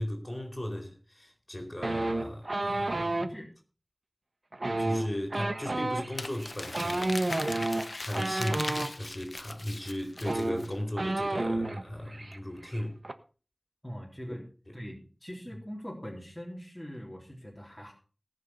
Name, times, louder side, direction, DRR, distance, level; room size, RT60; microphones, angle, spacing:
voice 1, 0.0-3.2 4.8-7.2 8.0-13.0 14.3-14.4 14.7-14.8, left 1 dB, 30° left, 4.2 m, -36 dB
sound 1, 1.8-3.3 4.5-8.9 9.8-9.9 10.2-11.8 12.1-12.4 12.6-13.1, right 2 dB, 80° right, 1.2 m, -31 dB
voice 2, 3.1-3.5 8.5-8.8 13.8-14.5 14.7-17.9, equal, 10° left, 3.5 m, -42 dB
Crumpling crinkling, 6.2-10.7, left 2 dB, 80° left, 0.8 m, -39 dB
19.0 x 6.6 x 5.6 m
wide cardioid pair, 45°, 0 cm